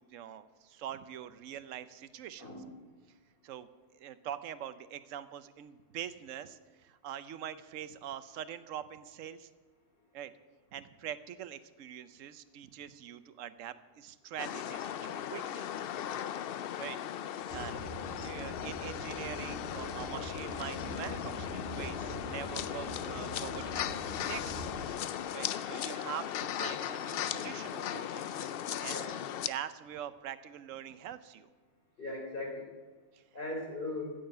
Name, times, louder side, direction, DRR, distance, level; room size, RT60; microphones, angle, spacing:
voice 1, 0.0-2.5 3.4-3.7 3.9-9.5 10.1-10.3 10.7-15.7 16.8-17.0 17.2-17.9 18.2-24.0 24.3-25.0 25.3-28.3 28.8-29.0 29.5-31.5 33.1-33.2, right 10 dB, 80° right, 12 dB, 1.1 m, -44 dB
voice 2, 2.4-2.7 25.5-25.6 28.9-29.1 32.0-32.7 33.3-34.1, left 2 dB, 45° left, -1 dB, 4.0 m, -39 dB
sound 1, 14.4-29.5, left 10 dB, 65° left, 0.6 m, -37 dB
sound 2, 17.5-24.9, equal, 15° right, 5.3 m, -44 dB
15.0 x 7.1 x 9.0 m, 1.3 s
omnidirectional pair, 1.3 m